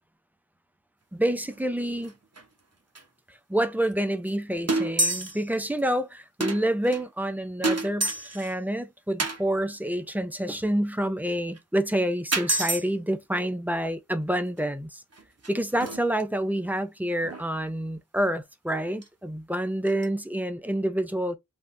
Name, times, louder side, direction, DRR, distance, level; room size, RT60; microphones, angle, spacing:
voice 1, 1.1-2.1 3.5-15.0 15.5-21.4, right 1 dB, 5° right, 0.5 m, -28 dB
sound 1, 1.4-1.7 2.0-2.1 2.4-2.5 3.0-3.1 3.9-4.0 4.3-4.4 4.7-5.5 5.8-5.9 6.4-7.0 7.6-8.5 9.2-9.4 11.6-11.7 12.3-12.8 14.6-14.7 15.1-16.2 17.2-17.5 19.0-19.1 19.5-19.6 19.9-20.1, right 2 dB, 50° right, 0.8 m, -28 dB
3.5 x 2.4 x 2.6 m
wide cardioid pair, 50°, 32 cm